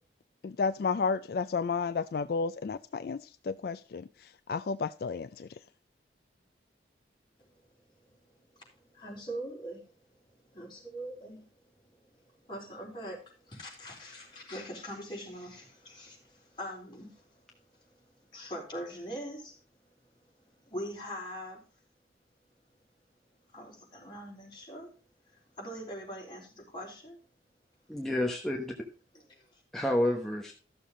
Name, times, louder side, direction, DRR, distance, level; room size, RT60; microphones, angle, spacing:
voice 1, 0.4-4.0 4.5-5.5, left 5 dB, 55° left, 0.3 m, -32 dB
voice 2, 8.9-11.5 11.8-17.4 17.7-19.6 20.5-21.6 23.5-24.9 25.3-27.2 29.3-29.6, equal, 25° left, 3.9 m, -43 dB
voice 3, 27.9-28.7 29.7-30.5, left 1 dB, ahead, 1.1 m, -29 dB
13.0 x 6.9 x 3.7 m
head